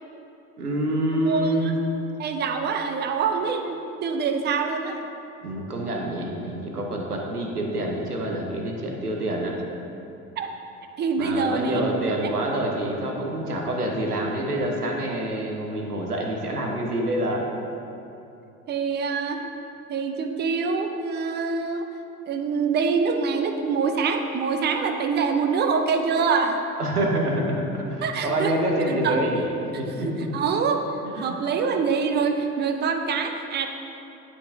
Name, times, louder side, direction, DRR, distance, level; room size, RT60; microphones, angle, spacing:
voice 1, 0.6-1.8 5.4-9.6 11.2-17.4 26.8-29.5 29.8-30.2 31.0-31.4, right 1 dB, 90° right, 0 dB, 0.8 m, -26 dB
voice 2, 1.2-1.7 2.2-5.0 10.4-10.5 11.0-11.8 12.7-12.8 18.7-19.4 19.9-21.9 22.3-26.6 28.0-28.5 29.0-29.2 30.0-30.8 31.2-33.7, right 5 dB, 25° right, 5 dB, 0.4 m, -25 dB
9.6 x 5.9 x 2.6 m, 2.8 s
figure-of-eight pair, 65°, 44 cm